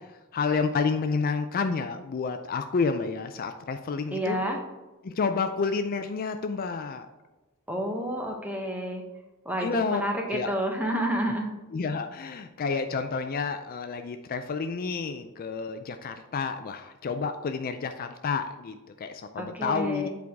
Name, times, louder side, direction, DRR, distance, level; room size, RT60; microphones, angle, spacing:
voice 1, 0.3-4.4 5.0-7.1 9.6-10.0 10.3-10.5 11.7-20.1, left 5 dB, 45° left, 8 dB, 0.4 m, -30 dB
voice 2, 4.1-4.6 7.7-9.0 9.4-11.5 19.4-20.1, right 1 dB, 10° right, 2 dB, 1.0 m, -29 dB
8.3 x 4.6 x 3.5 m, 1.1 s
head